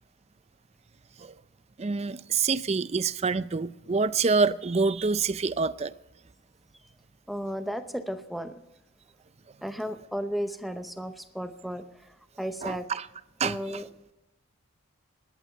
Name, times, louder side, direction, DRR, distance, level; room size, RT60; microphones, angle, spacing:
voice 1, 1.8-5.9 12.6-13.0 13.4-13.8, right 4 dB, 30° right, 0.4 m, -26 dB
voice 2, 7.3-8.6 9.6-12.9 13.4-13.9, equal, ahead, 0.7 m, -34 dB
19.0 x 11.5 x 5.6 m
head